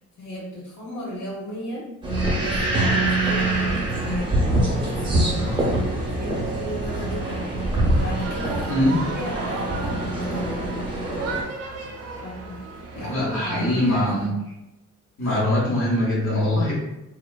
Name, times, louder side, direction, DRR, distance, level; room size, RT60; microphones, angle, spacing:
voice 1, 0.2-1.9 2.4-10.7 12.1-12.6 12.9-14.1 15.2-15.4, equal, 80° left, -6 dB, 1.1 m, -35 dB
sound 1, 2.0-11.4, right 2 dB, 15° right, 0.8 m, -24 dB
sound 2, 7.9-14.3, right 3 dB, 55° right, 0.5 m, -36 dB
voice 2, 8.7-9.0 12.9-14.3 15.2-16.7, left 1 dB, 45° left, -6 dB, 1.1 m, -22 dB
2.4 x 2.3 x 2.2 m, 0.92 s
cardioid pair, 90°, 30 cm